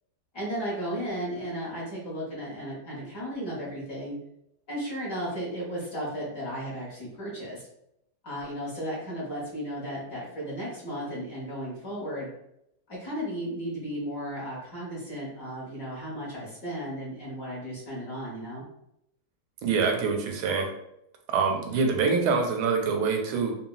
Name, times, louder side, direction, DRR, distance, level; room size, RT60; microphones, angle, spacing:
voice 1, 0.3-4.1 4.7-7.6 8.2-12.3 12.9-18.6, equal, 50° left, -6 dB, 1.3 m, -34 dB
voice 2, 19.6-20.7 21.3-23.6, right 5 dB, 90° right, 3 dB, 1.4 m, -25 dB
3.9 x 2.0 x 2.2 m, 0.78 s
omnidirectional pair, 2.1 m